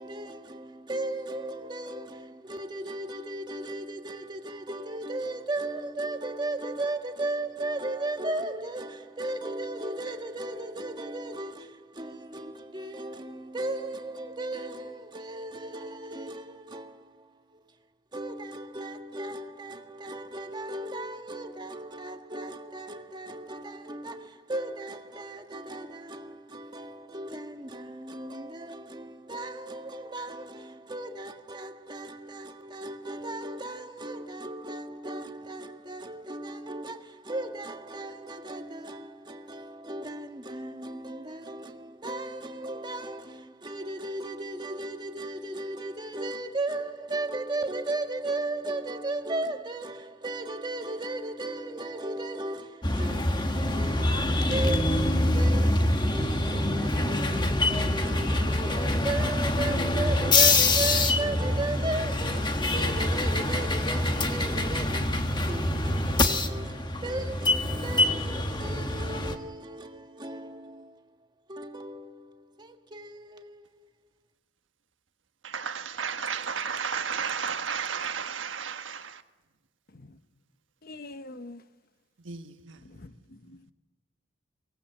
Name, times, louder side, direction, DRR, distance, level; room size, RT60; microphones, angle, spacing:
voice 1, 0.0-17.8 18.1-73.8, right 2 dB, 25° right, 1.5 m, -36 dB
sound 1, 52.8-69.4, left 2 dB, 25° left, 1.3 m, -25 dB
voice 2, 75.4-79.2 82.2-82.8, right 6 dB, 90° right, 1.4 m, -33 dB
voice 3, 80.8-81.6 82.8-83.7, left 2 dB, 50° left, 0.9 m, -45 dB
23.5 x 17.5 x 7.7 m
head